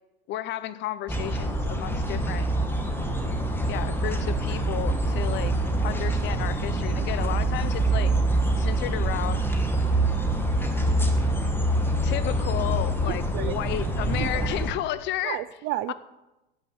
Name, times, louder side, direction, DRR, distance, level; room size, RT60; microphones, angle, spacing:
voice 1, 0.3-2.5 3.7-5.6 5.8-8.1 8.6-9.5 12.0-15.4 15.9-16.0, left 13 dB, 40° left, 0.6 m, -32 dB
sound 1, 1.1-14.7, right 1 dB, 5° left, 1.3 m, -25 dB
voice 2, 3.0-3.4 13.3-13.5 14.2-14.5 15.2-15.9, right 15 dB, 40° right, 0.4 m, -32 dB
12.0 x 5.4 x 7.9 m
hypercardioid pair, 115°, 30 cm